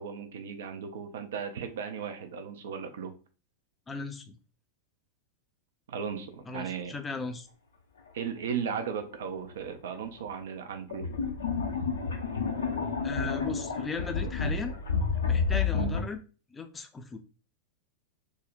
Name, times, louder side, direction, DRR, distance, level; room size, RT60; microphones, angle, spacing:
voice 1, 0.0-3.1 5.9-6.9 8.1-11.1, right 7 dB, 60° right, 7 dB, 0.4 m, -36 dB
voice 2, 3.9-4.4 6.5-7.5 13.0-14.7 15.3-16.2 16.5-17.2, left 4 dB, 15° left, 6 dB, 0.4 m, -37 dB
sound 1, 9.5-9.6 10.9-16.0, left 5 dB, 70° left, 0.5 m, -30 dB
3.6 x 2.0 x 2.5 m, 0.36 s
figure-of-eight pair, 90°, 0 cm